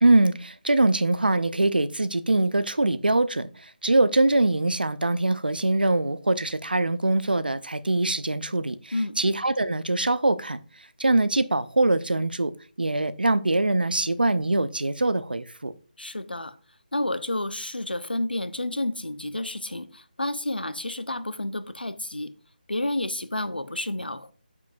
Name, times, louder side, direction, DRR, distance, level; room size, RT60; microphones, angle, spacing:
voice 1, 0.0-10.6 11.0-12.5 12.8-15.7, right 2 dB, 70° right, 0.7 m, -23 dB
voice 2, 16.0-16.6 16.9-22.3 22.7-24.3, left 1 dB, 80° left, 1.0 m, -30 dB
9.5 x 7.4 x 2.6 m
figure-of-eight pair, 155°, 5 cm